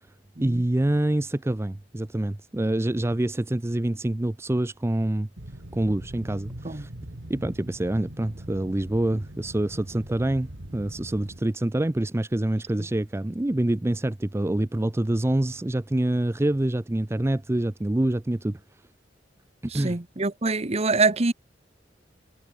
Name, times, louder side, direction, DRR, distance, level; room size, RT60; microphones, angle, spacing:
voice 1, 0.4-5.3 5.7-6.9 7.3-18.6 19.7-20.0, right 1 dB, 15° right, 0.5 m, -26 dB
sound 1, 5.4-11.4, right 1 dB, 90° right, 2.6 m, -42 dB
voice 2, 19.7-21.3, right 3 dB, 35° right, 1.1 m, -25 dB
head